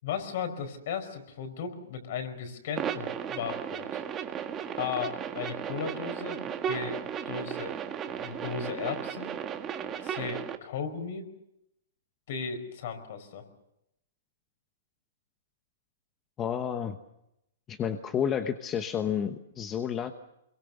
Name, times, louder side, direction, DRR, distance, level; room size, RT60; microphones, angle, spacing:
voice 1, 0.0-4.0 4.8-7.8 8.1-9.3 10.0-11.3 12.3-13.4, left 6 dB, 55° left, 7 dB, 5.0 m, -36 dB
sound 1, 2.8-10.6, right 8 dB, 20° right, 1.6 m, -35 dB
voice 2, 16.4-17.0 17.7-20.1, left 8 dB, 20° left, 8 dB, 1.0 m, -30 dB
25.0 x 22.5 x 6.8 m, 0.82 s
hypercardioid pair, 155°, 0 cm